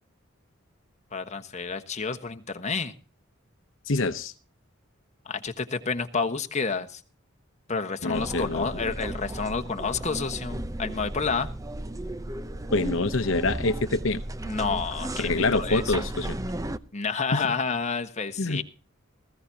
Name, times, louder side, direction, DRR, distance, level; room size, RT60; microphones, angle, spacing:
voice 1, 1.1-2.9 5.2-7.0 7.7-11.5 14.5-15.9 16.9-18.6, left 4 dB, 35° left, 7 dB, 1.3 m, -29 dB
voice 2, 3.9-4.3 8.0-8.7 12.7-14.2 15.2-16.4 17.3-17.4 18.4-18.6, left 2 dB, 70° left, 11 dB, 0.9 m, -26 dB
sound 1, 8.1-16.8, right 1 dB, 15° right, 0.7 m, -34 dB
19.5 x 15.5 x 2.8 m, 0.36 s
head